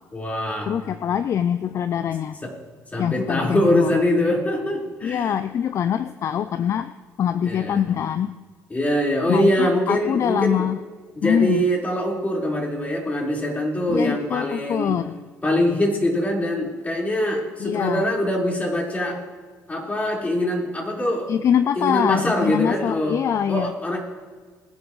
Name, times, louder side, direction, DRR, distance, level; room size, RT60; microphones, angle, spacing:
voice 1, 0.1-0.7 2.4-2.5 2.9-5.3 7.4-7.8 8.7-10.6 11.2-15.0 15.4-19.2 19.7-21.3 21.8-23.2 23.5-24.0, left 1 dB, 25° left, -3 dB, 4.5 m, -23 dB
voice 2, 0.7-2.4 3.0-4.0 5.0-6.9 7.2-8.3 9.3-10.8 11.2-11.7 13.9-15.2 17.6-18.1 21.3-23.7, left 9 dB, 50° left, 12 dB, 0.4 m, -24 dB
22.5 x 10.5 x 3.2 m, 1.5 s
supercardioid pair, 75°, 6 cm